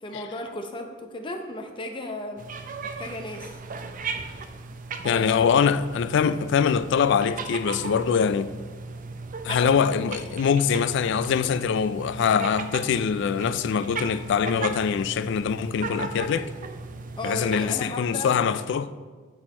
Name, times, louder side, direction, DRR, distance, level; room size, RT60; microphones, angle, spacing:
voice 1, 0.0-2.4 2.8-3.6 5.0-5.7 9.5-9.7 17.2-18.3, left 1 dB, 25° left, 0.7 m, -35 dB
sound 1, 2.4-17.7, right 4 dB, 45° right, 0.5 m, -37 dB
voice 2, 5.0-8.5 9.4-16.5 17.2-18.9, left 7 dB, 65° left, 0.3 m, -23 dB
7.9 x 6.2 x 4.3 m
head